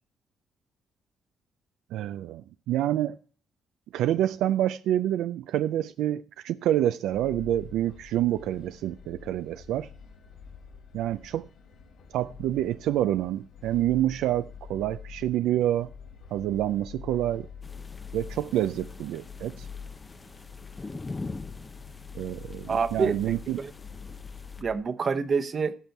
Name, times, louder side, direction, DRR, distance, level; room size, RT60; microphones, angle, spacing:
voice 1, 1.9-3.1 3.9-9.9 10.9-11.5 12.1-15.9 16.3-17.5 18.1-19.7 22.1-23.6, right 12 dB, 90° right, 0.4 m, -27 dB
sound 1, 7.1-24.8, left 6 dB, 85° left, 3.7 m, -46 dB
sound 2, 17.6-24.6, left 3 dB, 25° left, 0.5 m, -43 dB
voice 2, 22.7-23.7 24.6-25.7, right 5 dB, 45° right, 0.9 m, -27 dB
16.0 x 5.9 x 4.6 m
cardioid pair, 90°, 0 cm